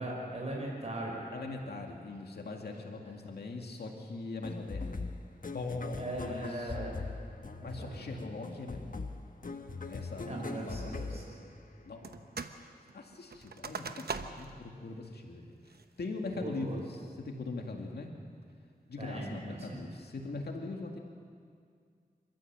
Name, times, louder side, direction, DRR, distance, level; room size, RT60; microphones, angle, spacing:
voice 1, 0.0-1.2 6.0-7.0 7.6-8.0 10.3-11.4 16.3-16.8 19.0-19.8, right 1 dB, 40° right, -2 dB, 5.6 m, -39 dB
voice 2, 1.3-5.0 5.5-6.7 7.6-9.0 9.9-11.0 11.8-12.1 12.9-18.1 18.9-21.0, left 3 dB, 85° left, 2 dB, 2.3 m, -41 dB
sound 1, 4.4-12.0, left 3 dB, 55° left, 1.3 m, -41 dB
sound 2, 12.0-12.6 12.9-14.6 15.0-15.1 15.6-16.0 16.5-17.0, right 4 dB, 75° right, 1.0 m, -41 dB
27.0 x 14.5 x 7.5 m, 2.2 s
cardioid pair, 55°, 16 cm